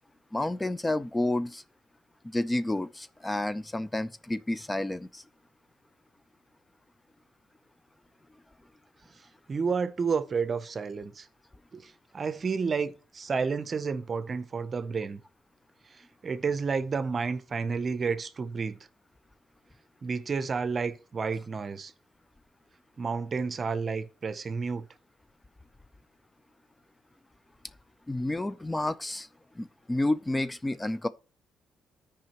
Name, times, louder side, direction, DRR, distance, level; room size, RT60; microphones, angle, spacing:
voice 1, 0.3-1.6 2.2-5.2 28.1-29.3 29.6-31.1, left 1 dB, 15° left, 0.3 m, -30 dB
voice 2, 9.5-11.3 11.7-15.2 16.2-18.8 20.0-21.9 23.0-24.8, right 5 dB, 40° right, 0.6 m, -30 dB
13.5 x 4.9 x 3.0 m
cardioid pair, 90°, 0 cm